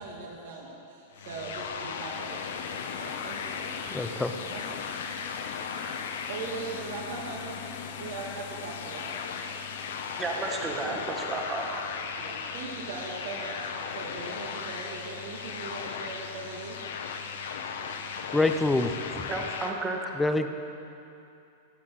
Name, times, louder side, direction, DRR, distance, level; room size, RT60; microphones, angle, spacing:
voice 1, 0.0-3.8 4.5-4.9 6.3-7.6 8.0-9.2 12.2-16.8, right 3 dB, 65° right, -3 dB, 2.2 m, -40 dB
sound 1, 1.1-19.7, left 6 dB, 80° left, 1.1 m, -37 dB
sound 2, 1.8-12.8, left 8 dB, 60° left, 0.8 m, -43 dB
voice 2, 3.9-4.3 18.3-19.2 20.2-20.5, left 2 dB, 5° left, 7 dB, 0.6 m, -26 dB
voice 3, 10.2-11.9 19.3-20.0, right 3 dB, 15° right, 1 dB, 1.5 m, -32 dB
16.0 x 7.2 x 6.3 m, 2.7 s
supercardioid pair, 150°, 0 cm